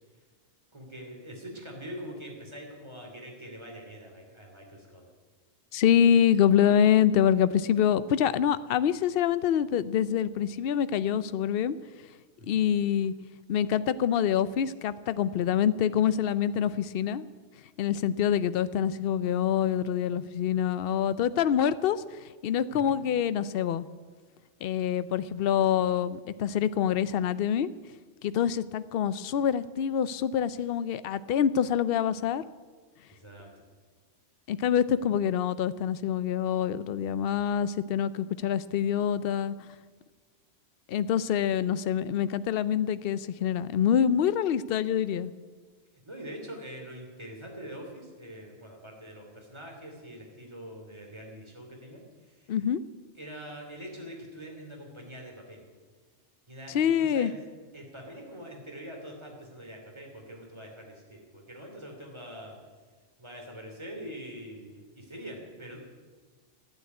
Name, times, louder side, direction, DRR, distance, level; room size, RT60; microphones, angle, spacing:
voice 1, 0.7-5.1 12.4-12.7 22.7-23.0 33.1-33.5 46.0-52.6 53.1-55.6 56.5-57.4 57.7-62.6 63.2-65.8, equal, 25° right, 1 dB, 3.1 m, -44 dB
voice 2, 5.7-11.8 12.5-13.1 13.5-17.3 17.8-23.9 24.6-27.7 28.2-32.4 34.5-39.6 40.9-45.3 52.5-52.8 56.7-57.3, left 9 dB, 60° left, 15 dB, 0.7 m, -26 dB
12.5 x 9.2 x 9.4 m, 1.4 s
omnidirectional pair, 1.2 m